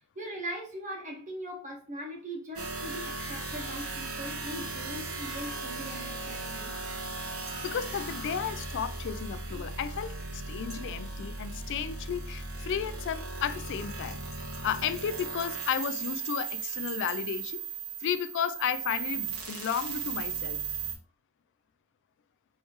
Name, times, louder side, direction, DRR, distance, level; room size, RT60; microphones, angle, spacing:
voice 1, 0.1-6.7 9.5-9.6, right 1 dB, 35° right, 1.3 m, -40 dB
sound 1, 2.6-21.0, right 4 dB, 80° right, 1.2 m, -37 dB
sound 2, 7.5-7.9 10.7-11.2 13.7-17.5, right 1 dB, 5° right, 1.4 m, -53 dB
voice 2, 7.6-17.6 18.0-20.6, left 8 dB, 55° left, 0.3 m, -33 dB
4.6 x 3.2 x 3.1 m
head